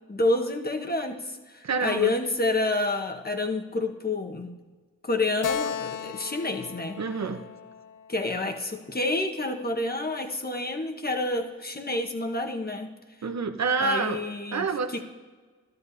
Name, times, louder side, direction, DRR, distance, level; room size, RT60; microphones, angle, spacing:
voice 1, 0.1-4.5 5.0-7.0 8.1-12.9 13.8-15.0, left 2 dB, 30° left, 4 dB, 1.4 m, -28 dB
voice 2, 1.6-2.1 7.0-7.4 13.2-14.2 14.5-15.0, right 5 dB, 60° right, 7 dB, 1.0 m, -27 dB
Keyboard (musical), 5.4-8.9, left 7 dB, 75° left, 0.5 m, -35 dB
13.5 x 12.5 x 2.8 m, 1.4 s
supercardioid pair, 40°, 31 cm